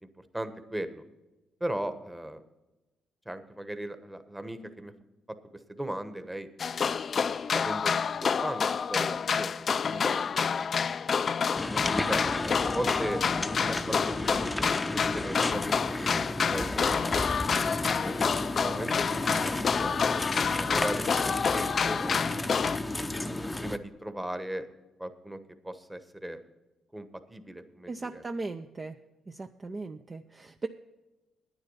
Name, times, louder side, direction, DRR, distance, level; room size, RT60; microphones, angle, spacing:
voice 1, 0.3-1.0 1.6-2.4 3.3-4.9 5.7-6.5 7.5-10.8 11.6-12.2 12.6-13.2 13.7-15.8 16.3-17.0 17.7-18.9 19.3-19.9 20.6-22.7 23.3-24.7 25.0-25.4 25.6-26.4 26.9-28.2, right 1 dB, 10° right, 10 dB, 1.1 m, -38 dB
sound 1, 6.6-22.8, left 6 dB, 45° left, 0.4 m, -28 dB
sound 2, 11.6-23.8, left 1 dB, 15° left, 0.7 m, -33 dB
voice 2, 27.9-29.0 29.3-30.7, right 3 dB, 30° right, 7 dB, 0.5 m, -38 dB
10.0 x 9.6 x 5.6 m, 1.0 s
cardioid pair, 90°, 0 cm